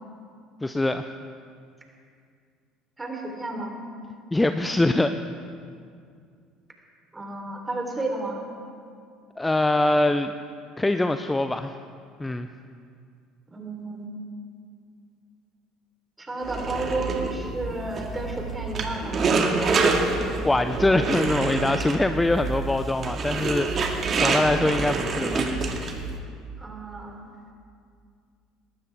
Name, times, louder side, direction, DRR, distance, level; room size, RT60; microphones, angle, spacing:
voice 1, 0.6-1.0 4.3-5.2 9.4-10.3 10.8-11.8 12.2-12.5 20.2-25.6, left 2 dB, 10° left, 9 dB, 0.7 m, -23 dB
voice 2, 3.0-3.8 7.1-8.5 13.5-14.1 16.2-19.3 26.6-27.2, right 2 dB, 15° right, 1 dB, 4.1 m, -32 dB
sound 1, 16.4-26.2, right 4 dB, 40° right, 2.1 m, -27 dB
19.5 x 19.0 x 3.7 m, 2.2 s
figure-of-eight pair, 60°, 0 cm